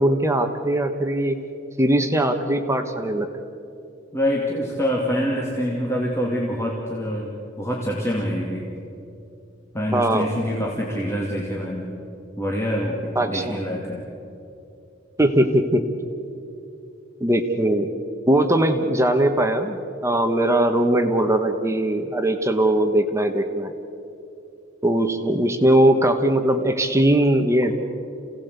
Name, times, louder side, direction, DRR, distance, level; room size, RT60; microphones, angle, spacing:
voice 1, 0.0-1.4 1.8-3.3 9.9-10.3 13.1-13.6 15.2-15.8 17.2-17.9 18.3-23.7 24.8-27.7, right 1 dB, 15° right, 6 dB, 1.2 m, -20 dB
voice 2, 4.1-8.7 9.7-11.9 12.4-14.0, equal, 15° left, -3 dB, 2.5 m, -25 dB
27.5 x 17.5 x 8.2 m, 2.8 s
head